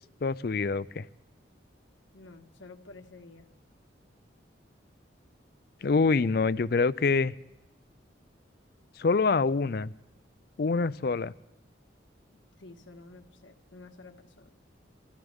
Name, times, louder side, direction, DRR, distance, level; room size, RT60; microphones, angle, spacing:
voice 1, 0.2-1.1 5.8-7.3 9.0-9.9 10.6-11.3, left 4 dB, 55° left, 18 dB, 0.4 m, -25 dB
voice 2, 2.1-3.5 12.3-14.5, left 3 dB, 90° left, 6 dB, 1.5 m, -51 dB
27.0 x 14.5 x 3.6 m, 0.98 s
head